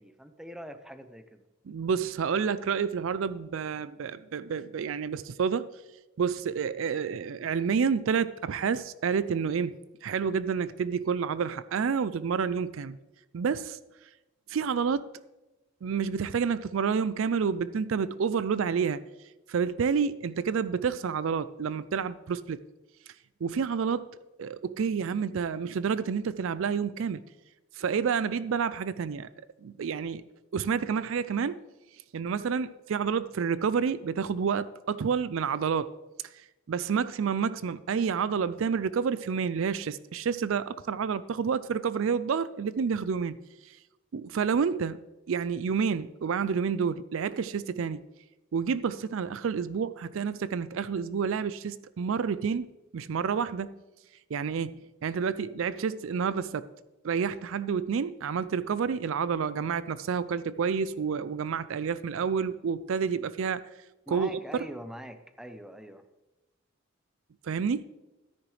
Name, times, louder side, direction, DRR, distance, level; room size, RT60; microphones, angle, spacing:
voice 1, 0.0-1.5 64.1-66.1, equal, 5° right, 0.6 m, -43 dB
voice 2, 1.7-5.7 6.2-13.0 13.3-13.8 14.5-15.1 15.8-19.0 19.5-22.6 23.4-24.1 24.4-27.2 27.7-29.3 29.6-30.2 30.5-31.6 32.1-35.9 36.7-43.4 44.1-45.0 45.3-48.0 48.5-52.7 52.9-53.7 54.3-56.7 57.0-63.7 64.1-64.4 67.4-67.8, right 6 dB, 65° right, 0.4 m, -29 dB
13.5 x 10.0 x 3.3 m
head